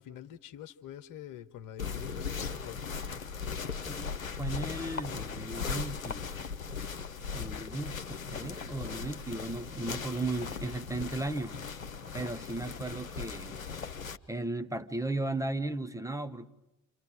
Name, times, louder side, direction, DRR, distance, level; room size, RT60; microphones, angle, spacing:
voice 1, 0.0-2.8, left 11 dB, 50° left, 1.5 m, -46 dB
sound 1, 1.8-14.2, left 5 dB, 85° left, 0.8 m, -38 dB
voice 2, 4.4-6.4 7.3-11.6 12.1-13.6 14.3-16.5, right 2 dB, 10° right, 1.6 m, -36 dB
30.0 x 28.5 x 5.1 m
figure-of-eight pair, 50°, 40 cm